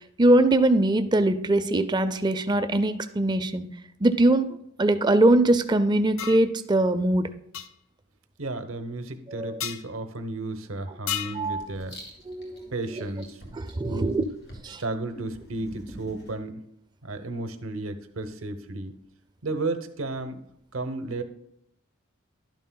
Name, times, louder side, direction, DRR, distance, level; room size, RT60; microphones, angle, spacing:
voice 1, 0.2-3.6 4.0-7.3 9.3-9.6 11.3-11.7 12.3-13.0 13.8-14.3 14.6-14.8, right 1 dB, 20° right, 11 dB, 0.4 m, -22 dB
sound 1, 6.2-6.4 7.5-7.7 9.6-9.8 11.1-11.4, left 10 dB, 80° left, 0.5 m, -31 dB
voice 2, 8.4-12.0 12.7-13.6 13.8-14.2 14.8-16.6 17.0-19.0 19.4-20.4 20.7-21.2, right 2 dB, 90° right, 9 dB, 0.8 m, -33 dB
Writing, 11.2-16.3, equal, 55° left, 2.2 m, -47 dB
11.5 x 9.2 x 2.2 m, 0.74 s
head